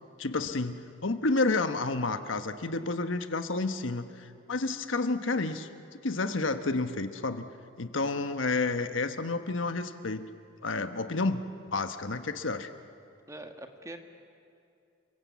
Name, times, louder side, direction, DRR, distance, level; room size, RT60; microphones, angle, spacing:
voice 1, 0.2-5.7 6.0-7.5 7.8-10.3 10.6-11.4 11.7-12.7, left 3 dB, 80° left, 9 dB, 1.2 m, -30 dB
voice 2, 8.0-8.3 13.3-14.0, right 1 dB, 15° right, 5 dB, 1.6 m, -44 dB
29.5 x 22.5 x 8.4 m, 2.4 s
head